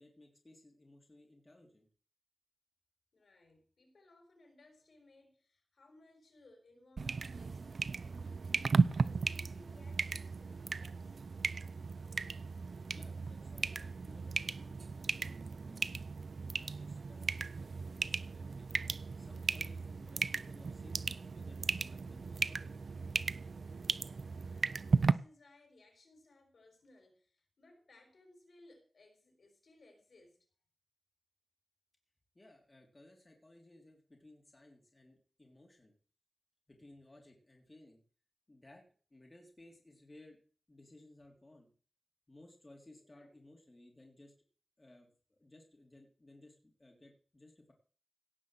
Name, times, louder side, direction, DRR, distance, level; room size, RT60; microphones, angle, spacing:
voice 1, 0.0-1.9 12.9-16.1 16.5-18.7 19.1-22.8 32.3-35.9 36.7-38.0 38.5-38.8 39.1-40.4 40.7-41.7 42.3-44.3 44.8-47.7, left 1 dB, 25° left, 3.3 m, -60 dB
voice 2, 3.1-8.5 9.0-11.2 24.3-30.5 42.9-43.3, left 2 dB, 65° left, 5.3 m, -63 dB
sound 1, 7.0-25.1, right 4 dB, 65° right, 0.5 m, -36 dB
17.0 x 6.1 x 7.6 m
wide cardioid pair, 95°, 0 cm